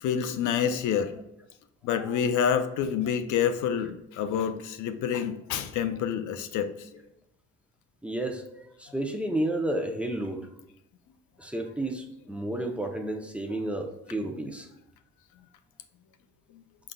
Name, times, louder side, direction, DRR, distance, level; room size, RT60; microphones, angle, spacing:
voice 1, 0.0-1.2 1.8-6.7, left 8 dB, 80° left, 9 dB, 0.5 m, -27 dB
voice 2, 8.0-10.5 11.4-14.7, right 1 dB, 5° right, 3 dB, 0.6 m, -32 dB
5.1 x 3.8 x 2.3 m, 0.89 s
cardioid pair, 90°, 30 cm